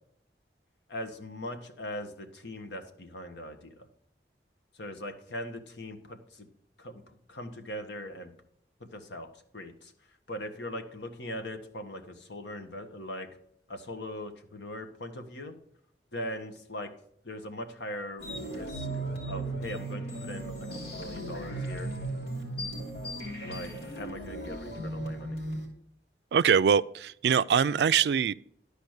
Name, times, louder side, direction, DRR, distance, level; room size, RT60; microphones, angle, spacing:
voice 1, 0.9-3.9 4.7-6.5 6.8-7.0 7.3-8.3 8.8-9.3 9.5-9.9 10.3-13.3 13.7-15.5 16.1-16.9 17.2-18.9 19.2-21.9 23.4-25.4, left 1 dB, 85° left, 1.3 m, -40 dB
sound 1, 18.2-25.7, right 1 dB, 65° left, 3.3 m, -36 dB
voice 2, 26.3-28.3, right 7 dB, 70° right, 0.3 m, -23 dB
12.0 x 5.0 x 6.5 m
head